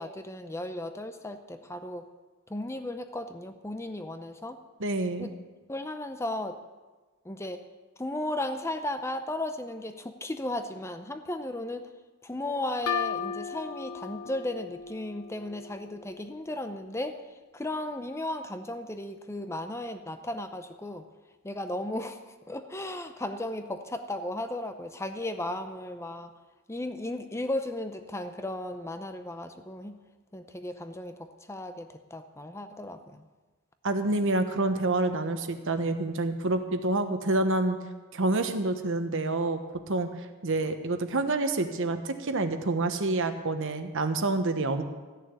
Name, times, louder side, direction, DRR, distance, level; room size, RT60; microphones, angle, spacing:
voice 1, 0.0-2.1 2.5-4.6 5.2-5.3 5.7-6.6 7.3-7.6 8.0-11.9 12.2-17.2 17.5-21.1 21.4-26.3 26.7-29.9 30.3-33.3, left 1 dB, 10° left, 8 dB, 0.6 m, -35 dB
voice 2, 4.8-5.3 33.8-37.8 38.1-39.6 39.9-40.1 40.4-44.8, right 2 dB, 60° right, 8 dB, 1.1 m, -27 dB
sound 1, 12.9-16.4, left 7 dB, 85° left, 0.9 m, -36 dB
14.5 x 6.8 x 9.5 m, 1.3 s
head